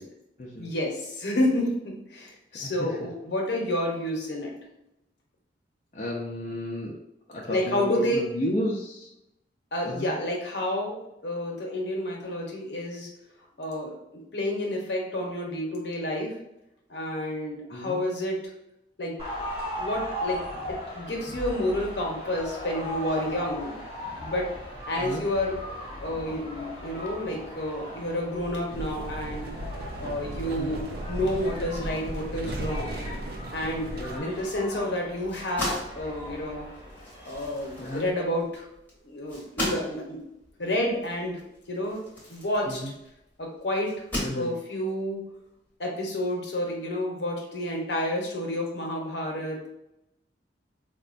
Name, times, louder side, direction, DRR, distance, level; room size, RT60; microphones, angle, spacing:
voice 1, 0.6-4.5 7.5-8.3 9.7-13.1 13.6-13.9 14.3-16.3 16.9-18.4 19.0-19.2 19.8-20.4 20.7-23.7 24.2-24.5 24.9-25.6 26.0-29.5 30.0-33.0 33.5-33.9 34.2-36.7 37.2-38.7 39.0-40.2 40.6-41.4 41.7-42.0 42.3-42.8 43.4-43.9 44.3-45.2 45.8-49.7, left 1 dB, 70° left, 0 dB, 0.8 m, -30 dB
voice 2, 5.9-6.9 7.3-9.1 9.8-10.1 17.7-18.0 25.0-25.2 30.4-30.7 34.0-34.3 37.8-38.1 42.7-42.9 44.2-44.5, equal, 40° left, -4 dB, 0.5 m, -32 dB
sound 1, 19.2-38.1, equal, 30° right, 1.1 m, -39 dB
sound 2, 28.7-34.2, right 1 dB, 60° right, 0.4 m, -36 dB
sound 3, 35.2-43.2 43.8-44.9, left 1 dB, 10° left, 1.0 m, -36 dB
4.3 x 2.1 x 2.5 m, 0.86 s
head